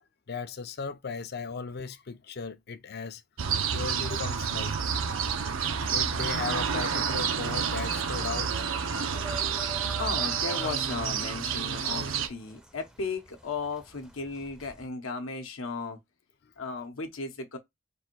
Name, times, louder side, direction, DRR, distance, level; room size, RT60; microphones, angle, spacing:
voice 1, 0.3-3.2 3.7-4.7 5.8-8.6 9.2-9.5, left 4 dB, 50° left, 0.5 m, -37 dB
sound 1, 3.4-12.3, right 7 dB, 75° right, 0.6 m, -29 dB
sound 2, 9.1-14.9, right 3 dB, 5° right, 0.5 m, -45 dB
voice 2, 10.0-16.0 16.6-17.6, left 4 dB, 80° left, 0.8 m, -35 dB
3.5 x 2.6 x 4.3 m
head